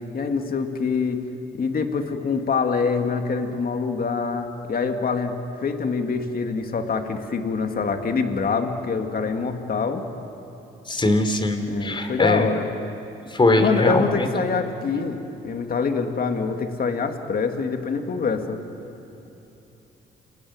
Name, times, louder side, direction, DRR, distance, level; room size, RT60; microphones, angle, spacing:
voice 1, 0.1-1.2 1.5-10.0 11.7-12.7 13.6-15.2 15.4-18.6, left 5 dB, 45° left, 5 dB, 2.5 m, -25 dB
voice 2, 10.9-12.5 13.3-14.3, left 2 dB, 25° left, 7 dB, 3.5 m, -21 dB
28.5 x 19.5 x 9.7 m, 3.0 s
cardioid pair, 90°, 20 cm